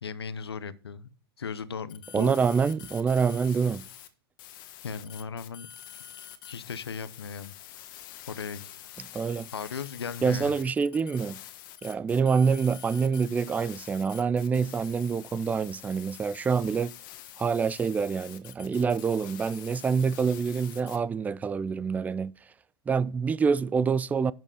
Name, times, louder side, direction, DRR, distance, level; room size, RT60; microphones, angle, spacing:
voice 1, 0.0-1.1 1.4-2.4 4.8-5.7 6.2-7.5 8.3-8.7 9.5-10.5, left 6 dB, 85° left, 0.7 m, -37 dB
sound 1, 1.9-4.1 4.4-21.0, left 12 dB, 55° left, 1.4 m, -46 dB
voice 2, 2.1-3.8 9.1-9.5 10.2-11.4 11.8-16.9 17.4-22.3 22.9-24.3, right 5 dB, 10° right, 0.3 m, -26 dB
11.5 x 5.3 x 4.9 m
hypercardioid pair, 105°, 13 cm